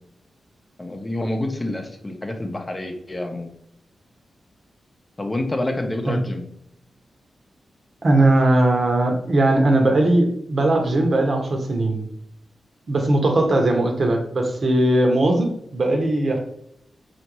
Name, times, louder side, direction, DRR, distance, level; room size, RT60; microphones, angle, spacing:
voice 1, 0.8-3.5 5.2-6.5, left 1 dB, 25° left, 3 dB, 0.7 m, -28 dB
voice 2, 8.0-12.0 12.9-16.4, right 1 dB, 55° right, 2 dB, 0.8 m, -19 dB
4.3 x 2.5 x 3.0 m, 0.73 s
cardioid pair, 60°, 0 cm